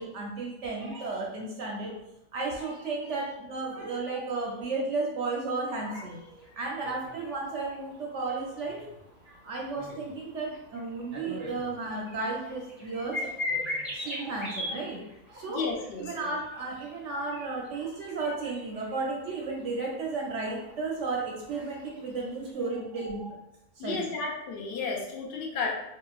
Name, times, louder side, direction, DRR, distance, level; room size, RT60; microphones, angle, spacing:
voice 1, 0.0-2.0 2.3-8.9 9.2-15.0 15.3-15.7 16.0-23.4 23.8-24.1, right 3 dB, 65° right, -1 dB, 0.8 m, -34 dB
sound 1, 6.1-22.5, left 2 dB, ahead, 1.1 m, -42 dB
voice 2, 15.5-16.3 23.8-25.7, left 4 dB, 60° left, -1 dB, 0.6 m, -33 dB
3.8 x 2.3 x 2.3 m, 0.86 s
omnidirectional pair, 1.5 m